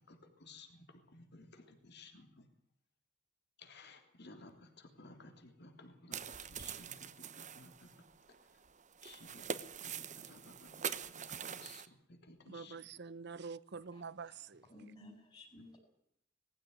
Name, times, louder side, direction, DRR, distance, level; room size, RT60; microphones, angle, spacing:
voice 1, 0.0-2.5 3.6-6.2 6.5-8.0 9.0-12.9, left 2 dB, 55° left, 3.4 m, -57 dB
sound 1, 6.1-11.9, right 7 dB, 35° right, 1.1 m, -44 dB
voice 2, 12.5-14.6, right 5 dB, 55° right, 0.8 m, -46 dB
voice 3, 14.3-15.8, left 1 dB, 20° left, 5.3 m, -56 dB
20.0 x 15.0 x 9.5 m
head